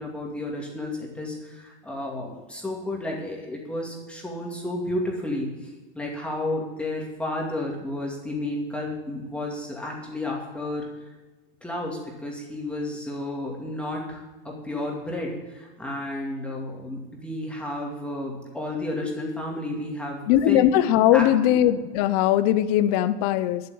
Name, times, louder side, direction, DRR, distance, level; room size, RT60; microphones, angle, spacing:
voice 1, 0.0-10.9 11.6-20.2 20.5-20.7 21.1-21.2, left 1 dB, 5° left, -2 dB, 2.4 m, -32 dB
voice 2, 20.3-23.6, left 12 dB, 45° left, 11 dB, 0.7 m, -20 dB
11.5 x 8.0 x 9.5 m, 1.2 s
supercardioid pair, 170°, 30 cm